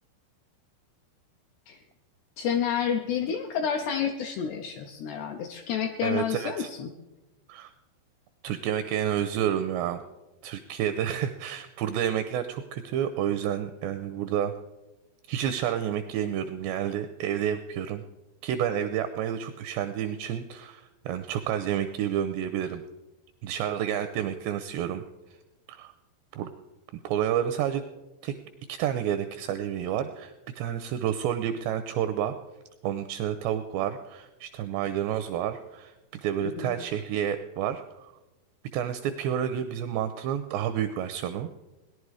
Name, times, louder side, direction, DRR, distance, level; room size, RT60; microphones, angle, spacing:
voice 1, 2.4-6.9 36.4-36.7, left 7 dB, 85° left, 4 dB, 2.4 m, -29 dB
voice 2, 6.0-6.7 7.5-7.7 8.4-10.0 10.4-14.5 15.3-18.0 18.4-22.8 23.4-25.0 25.7-25.9 26.3-26.5 27.0-27.8 28.2-28.4 28.7-32.3 32.8-35.9 36.2-38.1 38.7-41.5, right 10 dB, 85° right, 9 dB, 2.5 m, -30 dB
18.5 x 10.5 x 4.8 m, 1.0 s
omnidirectional pair, 5.6 m